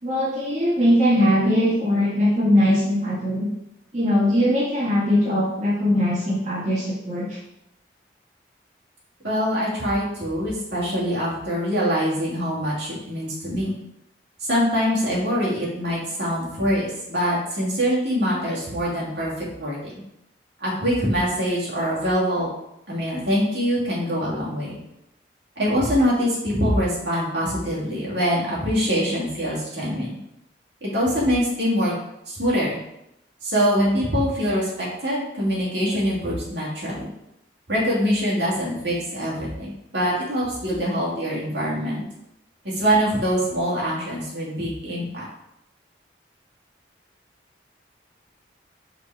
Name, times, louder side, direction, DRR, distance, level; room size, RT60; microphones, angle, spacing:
voice 1, 0.0-3.5 3.9-7.4, equal, 40° right, -7 dB, 1.6 m, -20 dB
voice 2, 9.2-13.7 14.5-19.9 20.6-22.5 22.9-24.8 25.6-30.1 30.8-31.9 32.3-32.8 33.4-37.1 37.7-42.0 42.6-45.2, equal, 75° right, -6 dB, 2.4 m, -24 dB
5.2 x 4.1 x 4.7 m, 0.83 s
head